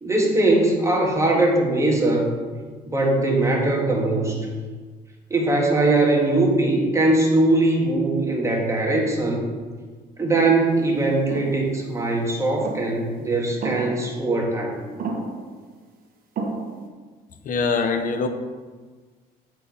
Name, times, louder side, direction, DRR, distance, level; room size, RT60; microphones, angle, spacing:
voice 1, 0.0-2.3 2.8-4.5 5.3-9.4 10.2-14.8, right 2 dB, 15° right, -1 dB, 1.7 m, -21 dB
sound 1, 11.3-11.6 12.6-13.0 13.6-14.1 15.0-15.5 16.4-16.9, right 3 dB, 55° right, 1.3 m, -30 dB
voice 2, 17.4-18.3, left 4 dB, 55° left, 7 dB, 0.8 m, -23 dB
8.0 x 4.6 x 5.6 m, 1.4 s
cardioid pair, 110°, 17 cm